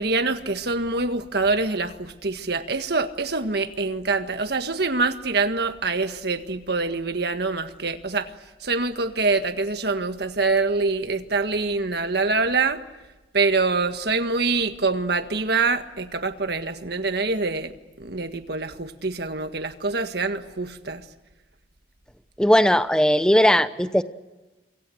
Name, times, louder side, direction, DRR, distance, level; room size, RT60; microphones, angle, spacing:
voice 1, 0.0-8.3 8.6-12.8 13.3-17.7 18.0-21.0, right 3 dB, 55° right, 8 dB, 1.6 m, -25 dB
voice 2, 22.4-24.0, equal, 5° left, 12 dB, 0.9 m, -18 dB
27.0 x 24.5 x 7.8 m, 1.1 s
head